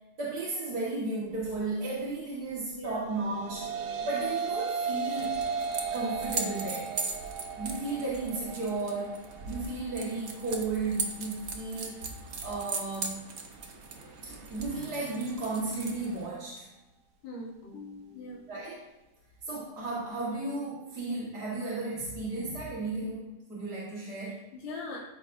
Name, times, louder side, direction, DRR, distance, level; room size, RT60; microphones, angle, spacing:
voice 1, 0.2-3.7 4.0-5.4 5.9-7.0 7.6-13.3 14.2-16.7 18.5-18.8 19.4-24.4, right 3 dB, 75° right, -7 dB, 2.2 m, -34 dB
voice 2, 2.7-3.0 17.2-18.5 24.5-25.0, left 2 dB, 65° left, -5 dB, 2.0 m, -41 dB
sound 1, 3.1-12.3, right 5 dB, 90° right, 1.4 m, -36 dB
sound 2, 5.1-16.3, right 4 dB, 50° right, 1.1 m, -39 dB
13.5 x 5.8 x 2.6 m, 1.1 s
omnidirectional pair, 1.7 m